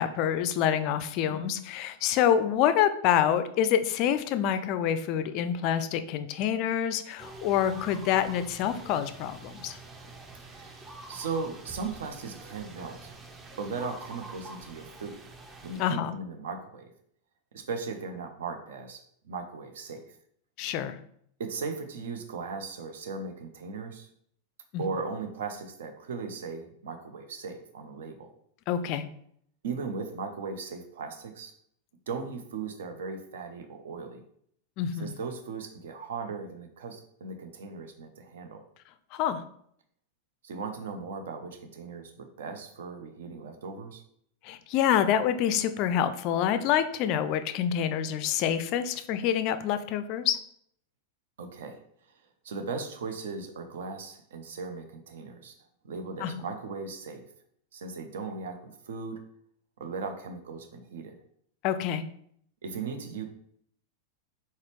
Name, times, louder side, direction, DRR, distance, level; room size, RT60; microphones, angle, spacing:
voice 1, 0.0-9.8 15.8-16.1 20.6-21.0 24.7-24.8 28.7-29.1 34.8-35.1 39.1-39.4 44.4-50.4 56.2-56.4 61.6-62.0, left 9 dB, 40° left, 11 dB, 0.4 m, -27 dB
sound 1, 7.2-15.8, right 2 dB, 20° right, 0.8 m, -46 dB
voice 2, 10.4-13.1 13.6-15.3 15.6-16.9 17.5-20.1 21.4-24.1 24.8-28.3 29.6-31.5 32.1-34.2 35.0-38.6 40.4-44.0 51.4-51.8 52.4-55.5 55.8-57.2 57.7-59.2 59.8-61.1 62.6-63.2, right 4 dB, 60° right, 6 dB, 0.7 m, -37 dB
4.2 x 4.0 x 3.1 m, 0.67 s
figure-of-eight pair, 90°, 0 cm